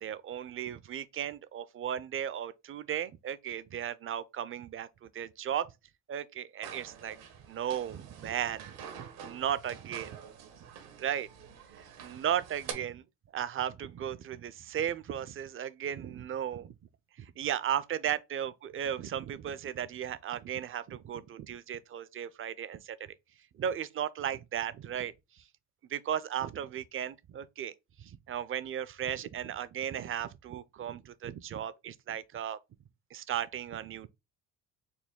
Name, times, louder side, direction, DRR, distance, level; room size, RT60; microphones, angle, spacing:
voice 1, 0.0-5.7 6.1-10.1 11.0-11.3 11.8-13.0 13.3-16.7 17.2-23.0 23.6-25.4 25.9-27.7 28.0-32.6 33.1-34.1, right 9 dB, 35° right, 0.4 m, -36 dB
sound 1, 6.6-12.7, right 8 dB, 80° right, 1.1 m, -47 dB
4.2 x 2.2 x 3.6 m
supercardioid pair, 75°, 37 cm